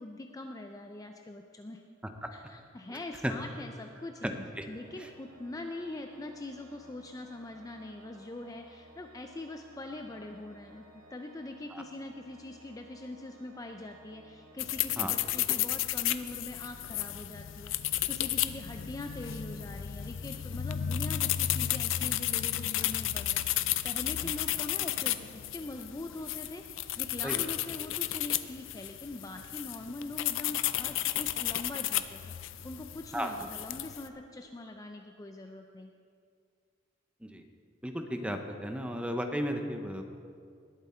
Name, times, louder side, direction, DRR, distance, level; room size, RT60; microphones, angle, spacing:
voice 1, 0.0-1.8 2.3-4.3 4.7-10.9 11.1-35.9, left 2 dB, 20° left, 4 dB, 0.4 m, -43 dB
Organ, 4.6-15.5, right 1 dB, 45° right, 3.4 m, -57 dB
sound 1, 14.6-34.1, left 12 dB, 75° left, 0.4 m, -33 dB
voice 2, 37.8-40.0, equal, 5° right, 5 dB, 0.8 m, -34 dB
19.5 x 7.5 x 4.4 m, 2.2 s
head